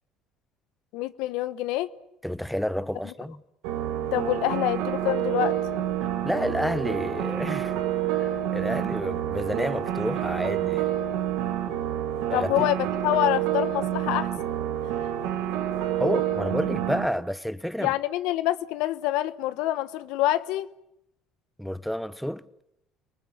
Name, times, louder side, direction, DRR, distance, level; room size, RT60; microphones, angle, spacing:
voice 1, 0.9-1.9 4.1-5.6 12.3-14.3 17.8-20.7, left 15 dB, 75° left, 1.1 m, -26 dB
voice 2, 2.2-3.4 6.2-7.8 8.1-10.9 12.3-12.5 16.0-17.9 21.6-22.4, equal, ahead, 1.0 m, -30 dB
sound 1, 3.6-17.1, right 11 dB, 80° right, 2.8 m, -28 dB
29.5 x 19.5 x 8.9 m
supercardioid pair, 80°, 0 cm